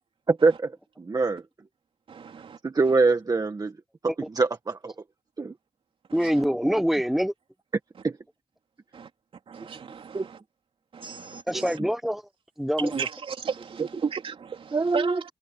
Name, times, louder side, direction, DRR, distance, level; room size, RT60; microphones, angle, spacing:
voice 1, 0.3-1.4 2.6-3.7 4.0-4.9 5.4-5.5 8.0-8.2 10.1-10.3 11.5-11.9 12.8-12.9 14.7-15.2, right 3 dB, 40° right, 1.8 m, -24 dB
voice 2, 2.1-2.6 6.1-6.3 8.9-9.1 9.5-10.4 10.9-11.8 12.9-15.2, right 6 dB, 75° right, 3.6 m, -34 dB
voice 3, 6.1-7.3 11.5-12.2 12.6-13.1, equal, 5° right, 0.9 m, -25 dB
cardioid pair, 60°, 9 cm